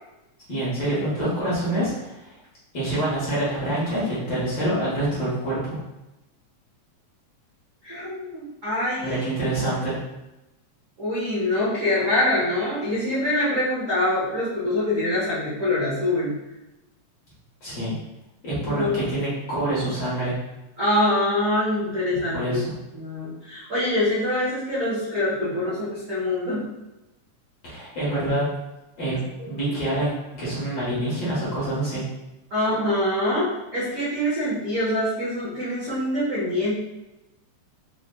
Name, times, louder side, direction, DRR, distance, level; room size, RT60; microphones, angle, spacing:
voice 1, 0.5-2.3 2.7-5.8 9.0-10.0 17.6-17.9 18.4-20.3 22.3-22.7 27.6-28.5 29.0-29.2 29.5-32.0, right 1 dB, 50° left, -9 dB, 1.5 m, -26 dB
voice 2, 7.8-9.3 11.0-16.3 18.6-18.9 20.8-22.6 22.9-26.7 32.5-36.7, left 1 dB, 80° right, -11 dB, 0.7 m, -24 dB
4.8 x 3.0 x 2.2 m, 0.97 s
omnidirectional pair, 3.4 m